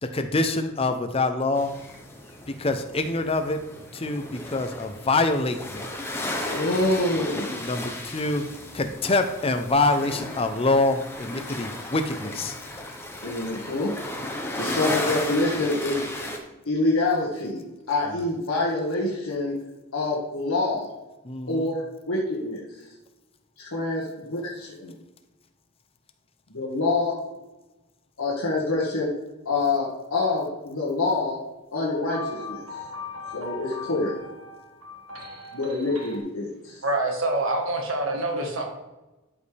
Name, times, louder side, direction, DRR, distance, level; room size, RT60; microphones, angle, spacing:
voice 1, 0.0-1.7 2.5-3.6 3.9-5.9 7.6-8.4 8.7-12.6 18.1-18.2 21.2-21.8, left 2 dB, 25° left, 7 dB, 0.6 m, -25 dB
sound 1, 1.6-16.4, left 1 dB, 10° left, 1.0 m, -35 dB
voice 2, 6.4-7.6 13.2-14.0 14.6-16.1 16.6-19.6 19.9-20.9 21.5-22.9 23.6-24.9 26.5-27.2 28.2-29.1 29.4-31.4 31.7-32.6 33.3-34.1 35.5-36.8, left 2 dB, 75° left, -5 dB, 1.7 m, -26 dB
sound 2, 31.8-36.2, left 4 dB, 90° right, 1.4 m, -39 dB
voice 3, 36.8-38.6, right 2 dB, 65° right, 1 dB, 1.4 m, -26 dB
12.5 x 5.3 x 3.4 m, 1.1 s
head